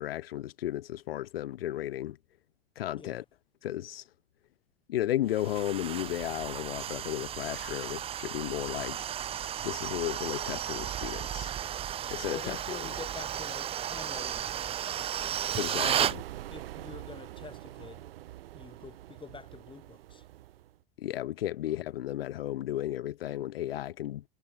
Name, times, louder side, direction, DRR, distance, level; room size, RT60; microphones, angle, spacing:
voice 1, 0.0-2.2 2.8-3.2 3.6-4.0 4.9-9.1 9.6-11.5 12.1-12.8 15.6-16.2 21.0-24.2, left 13 dB, 80° left, 2.4 m, -34 dB
sound 1, 5.3-16.2, right 10 dB, 20° right, 0.4 m, -34 dB
voice 2, 12.3-14.9 15.6-16.2 16.5-18.1 18.5-20.2 21.7-21.8, left 5 dB, 15° left, 7.1 m, -47 dB
sound 2, 15.8-20.8, right 14 dB, 80° right, 1.3 m, -45 dB
hypercardioid pair, 110°, 29 cm